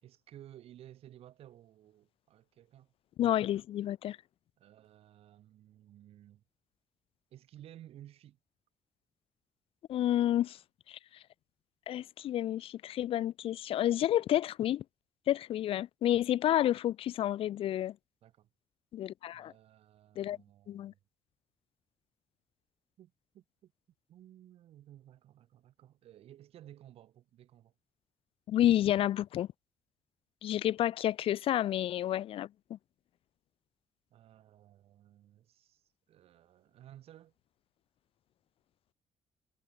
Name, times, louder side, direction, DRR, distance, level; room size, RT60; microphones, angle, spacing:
voice 1, 0.0-2.9 4.6-6.4 7.3-8.4 18.2-18.5 19.3-21.0 23.0-23.7 24.1-27.7 34.1-35.8 36.1-37.3, right 12 dB, 75° right, 4.2 m, -56 dB
voice 2, 3.2-4.2 9.9-10.6 10.9-11.0 11.9-14.8 15.3-17.9 18.9-19.5 20.2-20.4 20.7-20.9 28.5-29.5 30.4-32.5, left 12 dB, 65° left, 0.4 m, -30 dB
cardioid pair, 100°, 10 cm